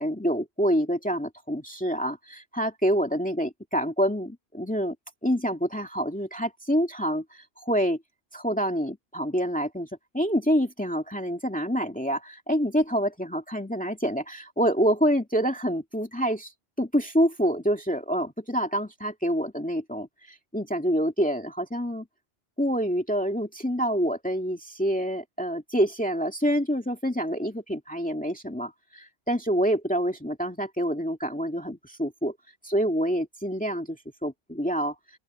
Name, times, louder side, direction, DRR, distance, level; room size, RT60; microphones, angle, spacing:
voice 1, 0.0-5.0 5.2-8.0 8.3-9.9 10.1-16.5 16.8-22.1 22.6-32.3 32.6-34.9, equal, 10° left, 2.2 m, -27 dB
open air
omnidirectional pair, 1.1 m